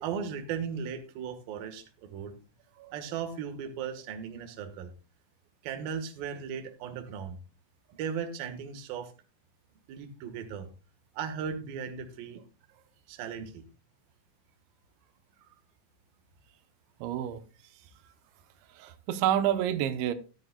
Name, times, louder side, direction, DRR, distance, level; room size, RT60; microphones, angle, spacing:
voice 1, 0.0-2.3 2.9-4.9 5.6-7.4 8.0-9.1 9.9-10.7 11.1-12.4 13.1-13.6 15.4-15.5, right 7 dB, 65° right, 2.9 m, -37 dB
voice 2, 17.0-17.4 18.8-20.1, right 11 dB, 90° right, 3.1 m, -28 dB
13.5 x 13.0 x 2.2 m
omnidirectional pair, 5.0 m